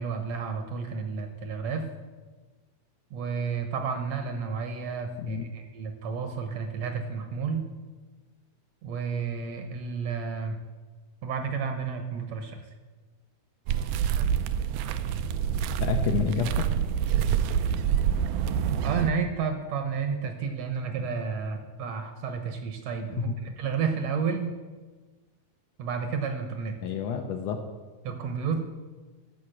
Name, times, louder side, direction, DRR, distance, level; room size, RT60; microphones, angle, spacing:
voice 1, 0.0-1.9 3.1-7.7 8.8-10.6 11.2-12.6 18.8-24.6 25.8-26.7 28.0-28.6, right 5 dB, 65° right, 6 dB, 1.9 m, -31 dB
sound 1, 13.7-19.1, right 8 dB, 85° right, 2.1 m, -26 dB
voice 2, 15.8-16.6 26.8-27.6, left 7 dB, 75° left, 5 dB, 1.7 m, -28 dB
13.0 x 5.9 x 7.5 m, 1.3 s
omnidirectional pair, 3.6 m